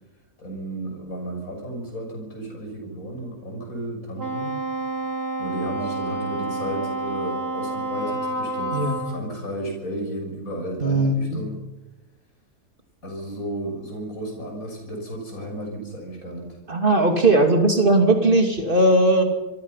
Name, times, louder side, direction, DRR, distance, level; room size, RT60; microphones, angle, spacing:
voice 1, 0.4-4.6 5.4-11.6 13.0-16.6, right 1 dB, 60° left, 1 dB, 7.3 m, -33 dB
Wind instrument woodwind instrument, 4.2-9.2, right 2 dB, 75° right, 2.6 m, -29 dB
voice 2, 10.8-11.4 16.7-19.2, right 2 dB, 30° right, 4 dB, 2.9 m, -18 dB
26.5 x 22.5 x 5.7 m, 1.1 s
omnidirectional pair, 1.7 m